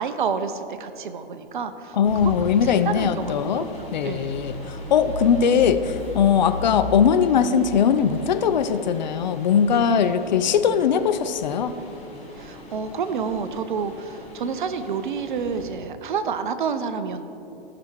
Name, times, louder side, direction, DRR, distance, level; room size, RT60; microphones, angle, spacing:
voice 1, 0.0-4.4 9.7-10.0 12.4-17.2, right 6 dB, 55° right, 10 dB, 0.8 m, -29 dB
voice 2, 1.9-11.7, left 7 dB, 45° left, 10 dB, 0.5 m, -20 dB
sound 1, 2.0-15.7, left 2 dB, 20° left, 2.2 m, -38 dB
14.5 x 6.2 x 4.5 m, 2.8 s
figure-of-eight pair, 110°, 30 cm